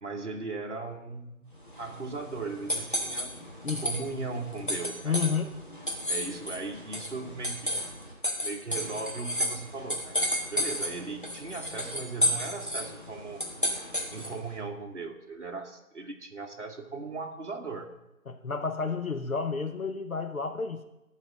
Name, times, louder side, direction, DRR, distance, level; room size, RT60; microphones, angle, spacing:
voice 1, 0.0-1.5 1.8-3.3 3.8-5.2 6.1-7.8 8.4-10.2 10.5-13.4 14.1-17.9, right 3 dB, 55° right, 1 dB, 1.0 m, -38 dB
sound 1, 1.6-14.5, equal, 35° left, 1.1 m, -33 dB
voice 2, 5.0-5.5 18.3-20.8, left 5 dB, 70° left, 7 dB, 0.8 m, -30 dB
11.0 x 4.2 x 6.2 m, 0.94 s
figure-of-eight pair, 175°, 44 cm